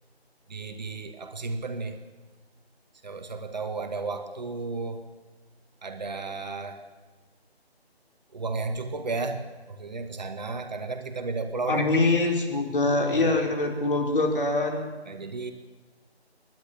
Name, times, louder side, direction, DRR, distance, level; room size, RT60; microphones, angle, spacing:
voice 1, 0.5-2.0 3.0-5.1 5.8-6.8 8.3-11.9 13.1-13.3 15.1-15.5, right 3 dB, 40° right, 7 dB, 2.2 m, -33 dB
voice 2, 11.7-14.9, left 2 dB, 55° left, 3 dB, 4.4 m, -24 dB
27.5 x 11.5 x 8.7 m, 1.3 s
figure-of-eight pair, 165°, 32 cm